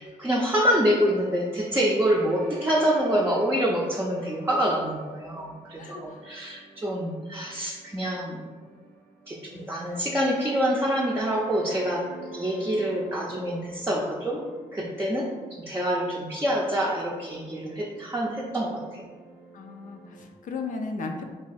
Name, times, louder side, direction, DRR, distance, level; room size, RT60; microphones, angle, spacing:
voice 1, 0.0-8.4 9.3-12.1 12.3-14.4 14.7-19.1, equal, 15° right, -4 dB, 0.5 m, -26 dB
sound 1, 0.7-20.3, right 3 dB, 75° right, 0.7 m, -46 dB
voice 2, 5.8-6.3 9.4-10.0 13.1-13.8 19.5-21.2, left 3 dB, 65° left, 4 dB, 0.4 m, -37 dB
2.6 x 2.4 x 4.0 m, 1.4 s
supercardioid pair, 55°, 15 cm